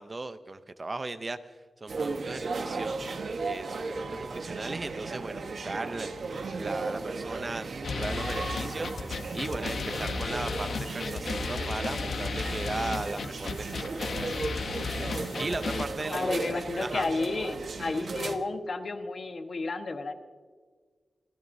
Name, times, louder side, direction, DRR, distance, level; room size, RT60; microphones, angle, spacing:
voice 1, 0.0-1.4 1.8-3.1 3.4-6.1 6.5-14.6 15.4-17.1, right 2 dB, 30° right, 11 dB, 0.6 m, -37 dB
sound 1, 1.9-18.4, right 3 dB, 60° right, 1.1 m, -36 dB
sound 2, 7.8-15.9, left 4 dB, 65° left, 0.9 m, -34 dB
voice 2, 16.1-20.1, left 3 dB, 50° left, 6 dB, 1.2 m, -32 dB
29.0 x 14.0 x 2.7 m, 1.5 s
wide cardioid pair, 135°, 0 cm